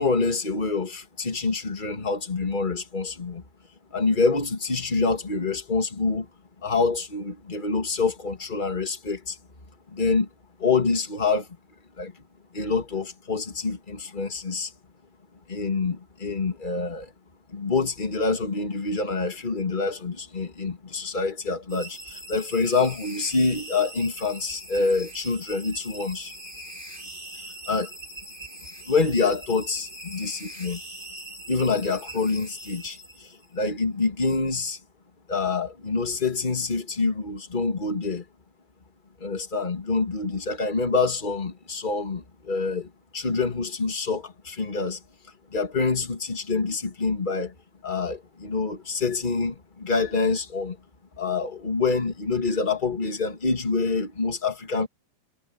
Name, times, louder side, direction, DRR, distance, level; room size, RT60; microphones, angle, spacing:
voice 1, 0.0-3.4 3.9-6.2 6.6-9.3 9.9-10.3 10.6-11.4 12.0-12.1 12.5-14.7 15.5-17.0 17.5-26.3 27.7-27.9 28.9-30.8 31.5-33.0 33.5-34.8 35.3-38.2 39.2-42.9 43.1-45.0 45.5-47.5 47.8-50.7 51.2-54.9, left 4 dB, 20° left, 1.4 m, -26 dB
sound 1, 21.7-33.6, right 1 dB, 5° right, 6.3 m, -41 dB
omnidirectional pair, 4.7 m